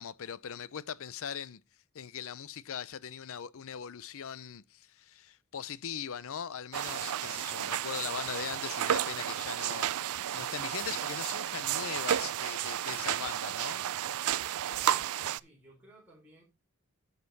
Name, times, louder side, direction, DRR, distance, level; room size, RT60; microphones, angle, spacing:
voice 1, 0.0-1.6 1.9-9.9 10.3-13.8, left 8 dB, 65° left, 0.6 m, -40 dB
sound 1, 6.7-15.4, right 10 dB, 70° right, 0.4 m, -32 dB
voice 2, 14.8-16.4, right 1 dB, 5° right, 3.4 m, -57 dB
9.8 x 6.8 x 4.0 m
head